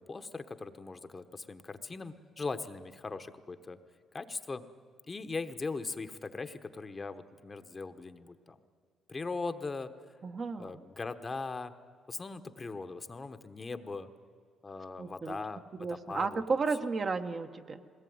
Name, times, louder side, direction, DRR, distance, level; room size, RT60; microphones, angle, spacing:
voice 1, 0.0-3.8 4.1-4.6 5.1-8.6 9.1-9.9 10.6-11.7 12.1-14.1 14.6-16.4, left 3 dB, 30° left, 9 dB, 1.0 m, -40 dB
voice 2, 10.2-10.7 15.0-15.4 15.8-17.8, right 4 dB, 40° right, 7 dB, 1.1 m, -33 dB
21.0 x 18.5 x 9.4 m, 2.2 s
cardioid pair, 90°, 0 cm